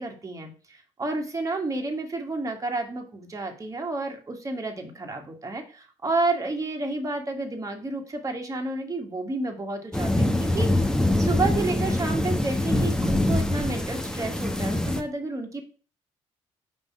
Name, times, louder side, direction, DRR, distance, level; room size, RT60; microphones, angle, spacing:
voice 1, 0.0-10.9 11.2-15.6, right 2 dB, 20° right, 2 dB, 1.6 m, -30 dB
sound 1, 9.9-15.0, left 1 dB, 5° left, 0.9 m, -24 dB
5.4 x 5.2 x 4.6 m, 0.37 s
figure-of-eight pair, 50°, 16 cm